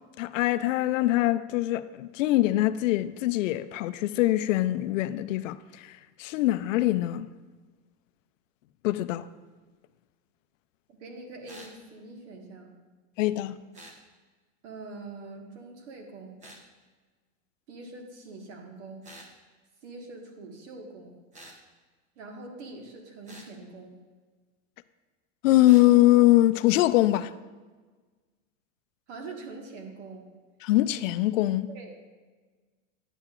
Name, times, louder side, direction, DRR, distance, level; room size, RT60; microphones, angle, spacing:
voice 1, 0.2-5.9 6.2-7.3 8.8-9.3 13.2-13.6 25.4-27.3 30.6-31.7, left 16 dB, 80° left, 0.5 m, -23 dB
voice 2, 11.0-12.7 14.6-16.4 17.7-19.1 19.8-21.2 22.2-24.0 29.1-30.3 31.7-32.1, right 3 dB, 60° right, 1.6 m, -44 dB
sound 1, 11.5-11.8 13.7-14.0 16.4-16.6 19.0-19.3 21.3-21.6 23.3-23.5 25.6-25.9, right 1 dB, 20° right, 0.9 m, -48 dB
9.9 x 8.3 x 2.5 m
supercardioid pair, 145°, 39 cm